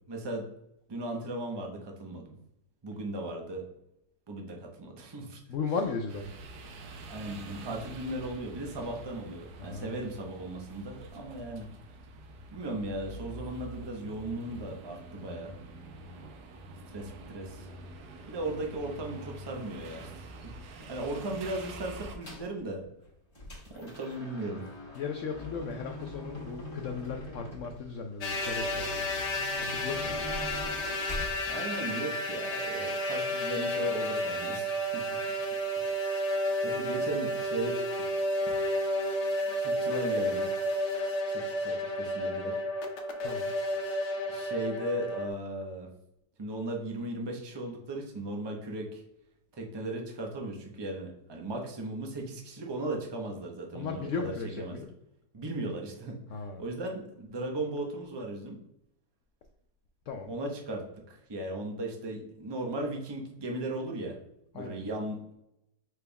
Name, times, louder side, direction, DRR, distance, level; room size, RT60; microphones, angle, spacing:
voice 1, 0.1-0.4 0.9-2.3 2.8-3.6 4.3-5.4 7.1-11.7 12.5-15.5 16.9-17.7 18.3-20.2 20.6-22.8 23.8-24.7 31.5-35.0 35.8-36.0 36.6-37.8 39.6-40.5 41.3-42.6 44.3-45.9 46.4-49.0 49.5-54.8 55.3-56.2 56.6-58.6 60.3-60.8 61.3-64.1 64.5-65.2, right 2 dB, 30° right, 1 dB, 0.4 m, -37 dB
voice 2, 5.5-6.3 9.6-9.9 24.9-29.1 29.6-30.3 43.2-43.5 53.7-54.9 56.3-56.6 60.1-60.3 64.5-64.8, left 5 dB, 85° left, 4 dB, 0.6 m, -36 dB
sound 1, 6.1-22.2, right 2 dB, 70° right, 1.2 m, -46 dB
sound 2, 22.2-22.6 23.0-31.4, left 1 dB, 20° left, 1.1 m, -43 dB
sound 3, 28.2-45.3, equal, 55° left, 0.8 m, -31 dB
5.1 x 4.5 x 2.2 m, 0.82 s
omnidirectional pair, 1.9 m